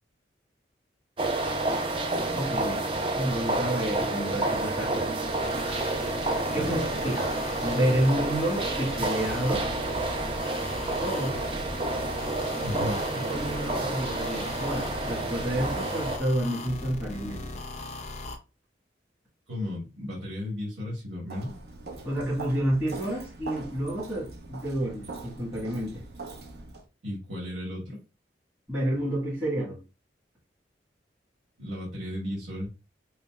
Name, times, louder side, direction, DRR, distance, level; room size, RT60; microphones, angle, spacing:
sound 1, 1.2-16.2, right 2 dB, 30° right, 0.5 m, -30 dB
voice 1, 2.3-2.8 3.2-5.1 6.5-7.3 7.6-9.7 11.0-11.4 12.7-17.5 22.0-26.0 28.7-29.8, right 1 dB, 10° right, 1.3 m, -30 dB
sound 2, 5.4-18.4, left 2 dB, 35° left, 0.4 m, -38 dB
voice 2, 6.5-7.0 12.6-13.0 19.5-21.5 27.0-28.0 31.6-32.7, left 1 dB, 80° right, 1.4 m, -34 dB
Walk footsteps, 21.3-26.8, right 3 dB, 60° right, 0.8 m, -42 dB
5.0 x 2.1 x 2.3 m
head